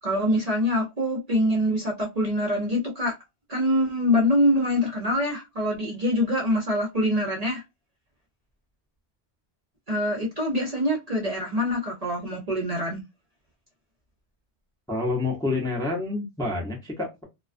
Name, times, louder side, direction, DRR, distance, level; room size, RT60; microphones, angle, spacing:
voice 1, 0.0-3.1 3.5-7.6 9.9-13.0, left 1 dB, 45° right, 0.6 m, -24 dB
voice 2, 14.9-17.2, left 3 dB, 5° left, 0.5 m, -28 dB
2.3 x 2.2 x 2.4 m
omnidirectional pair, 1.1 m